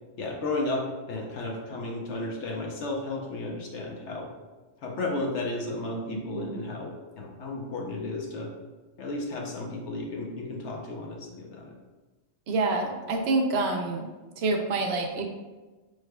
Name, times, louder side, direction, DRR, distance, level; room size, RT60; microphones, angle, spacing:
voice 1, 0.2-4.3 4.8-8.5 9.0-11.7, left 2 dB, 70° left, -1 dB, 1.0 m, -33 dB
voice 2, 6.1-6.6 12.5-14.1 14.4-15.2, right 3 dB, 65° right, 3 dB, 0.8 m, -27 dB
4.8 x 4.7 x 2.2 m, 1.2 s
omnidirectional pair, 1.2 m